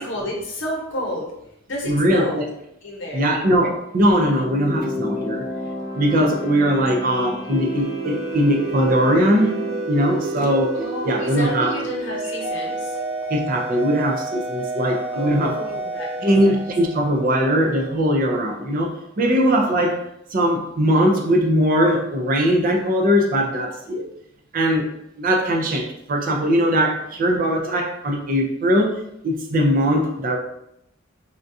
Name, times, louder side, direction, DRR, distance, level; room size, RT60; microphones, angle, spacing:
voice 1, 0.0-1.3 1.7-2.5 2.8-3.3 10.7-12.9 15.1-16.5, equal, 60° left, -2 dB, 0.9 m, -31 dB
voice 2, 1.8-2.5 3.1-5.5 5.9-9.5 9.9-10.8 11.1-11.8 13.3-15.6 16.2-20.0 20.3-24.0 24.5-24.9 25.2-29.0 29.2-30.4, equal, 40° right, 2 dB, 0.4 m, -20 dB
sound 1, 4.1-9.9, left 2 dB, 15° right, 1.3 m, -32 dB
sound 2, 7.5-17.8, right 2 dB, 80° right, 0.8 m, -29 dB
3.6 x 2.3 x 2.6 m, 0.78 s
head